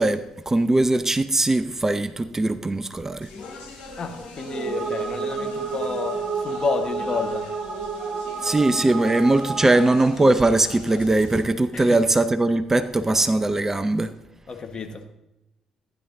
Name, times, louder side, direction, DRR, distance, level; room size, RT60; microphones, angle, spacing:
voice 1, 0.0-3.3 8.4-14.1, right 2 dB, 20° right, 0.6 m, -20 dB
Speech, 3.2-11.4, left 3 dB, 55° left, 3.6 m, -41 dB
voice 2, 4.0-7.5 11.7-12.0 14.5-15.1, left 5 dB, 40° left, 1.4 m, -30 dB
sound 1, 4.4-10.2, right 5 dB, 55° right, 1.0 m, -30 dB
15.0 x 10.0 x 2.7 m
figure-of-eight pair, 45°, 2 cm